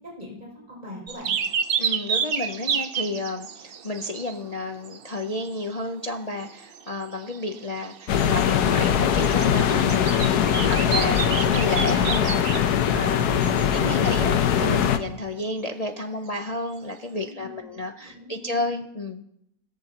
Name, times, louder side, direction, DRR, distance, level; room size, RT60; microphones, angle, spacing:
voice 1, 0.1-1.4 17.1-18.7, left 1 dB, 25° right, -3 dB, 6.5 m, -43 dB
sound 1, 1.1-4.6 4.8-5.7 6.2-6.3 6.4-12.8 13.4-13.8 17.2-17.3, right 7 dB, 70° right, 0.5 m, -30 dB
voice 2, 1.8-19.2, left 2 dB, 50° left, 4 dB, 0.4 m, -31 dB
sound 2, 8.1-15.0, left 8 dB, 70° left, 1.3 m, -21 dB
21.5 x 14.0 x 2.9 m, 0.74 s
omnidirectional pair, 1.9 m